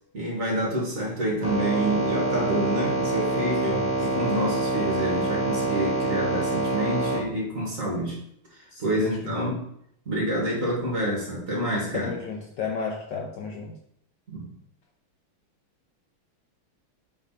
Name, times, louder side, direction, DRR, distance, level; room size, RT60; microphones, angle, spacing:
voice 1, 0.1-8.2 8.5-9.6 10.1-12.1 14.3-14.5, right 1 dB, 35° right, -3 dB, 2.2 m, -28 dB
sound 1, 1.4-7.2, right 2 dB, 5° right, 1.1 m, -26 dB
voice 2, 3.6-4.3 8.7-9.5 11.9-13.7, left 5 dB, 65° left, 1 dB, 1.2 m, -33 dB
7.7 x 3.6 x 4.1 m, 0.71 s
omnidirectional pair, 2.4 m